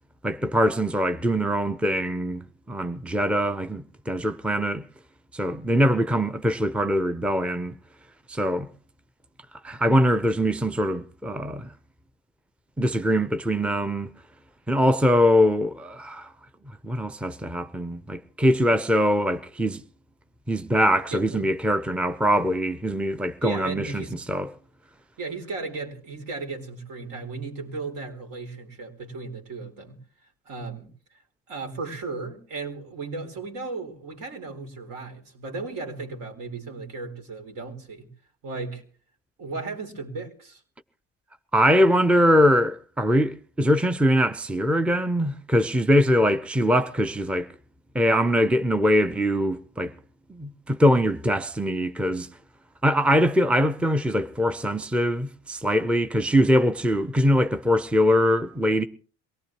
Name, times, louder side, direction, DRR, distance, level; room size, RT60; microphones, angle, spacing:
voice 1, 0.2-4.8 5.3-7.8 8.3-8.7 9.6-11.7 12.8-14.1 14.7-16.3 16.8-19.8 20.5-24.5 41.5-47.5 47.9-49.9 50.3-52.3 52.8-58.8, equal, 5° right, 0.8 m, -22 dB
voice 2, 21.1-21.4 23.4-24.1 25.2-30.0 30.5-30.9 31.5-38.1 38.4-38.8 39.4-40.6, right 3 dB, 60° right, 4.3 m, -35 dB
23.5 x 18.0 x 3.1 m
hypercardioid pair, 70°, 37 cm